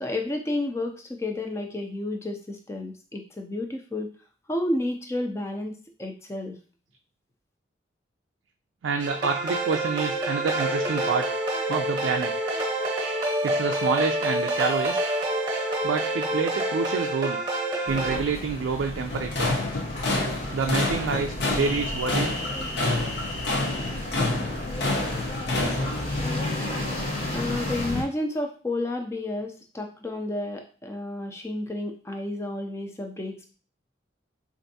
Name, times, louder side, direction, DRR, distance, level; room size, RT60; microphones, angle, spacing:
voice 1, 0.0-4.1 4.5-6.6 27.3-33.5, left 1 dB, 15° left, 4 dB, 0.4 m, -31 dB
voice 2, 8.8-11.3 11.7-12.3 13.4-15.0 15.8-17.4 17.9-19.5 20.5-22.3, right 5 dB, 85° right, 3 dB, 0.3 m, -28 dB
sound 1, 9.0-18.2, right 1 dB, 25° right, 0.8 m, -27 dB
sound 2, 17.9-28.0, left 1 dB, 35° left, 0.9 m, -33 dB
sound 3, 19.1-26.0, left 2 dB, 65° left, 0.7 m, -28 dB
4.3 x 2.5 x 2.7 m, 0.40 s
head